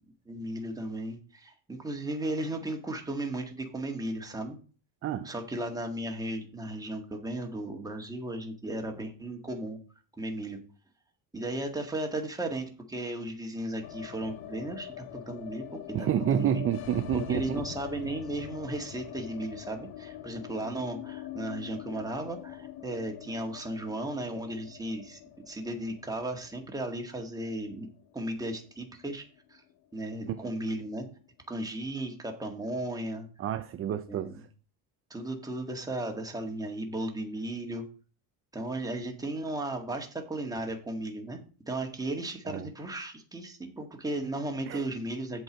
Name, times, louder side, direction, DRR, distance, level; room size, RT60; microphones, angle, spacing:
voice 1, 0.2-4.6 5.2-9.8 10.2-10.6 11.3-16.7 17.3-27.9 28.1-29.2 29.5-29.6 29.9-31.0 31.5-33.3 34.1-34.4 35.1-37.8 38.5-41.4 41.7-45.4, right 1 dB, 10° right, 1.8 m, -35 dB
voice 2, 5.0-5.3 15.9-17.6 30.3-30.5 33.4-34.3 42.5-42.7 44.7-44.8, right 10 dB, 35° right, 0.5 m, -29 dB
sound 1, 13.8-29.9 30.2-30.3 30.6-31.3, left 12 dB, 65° left, 1.0 m, -44 dB
7.8 x 4.7 x 7.3 m
cardioid pair, 130°, 41 cm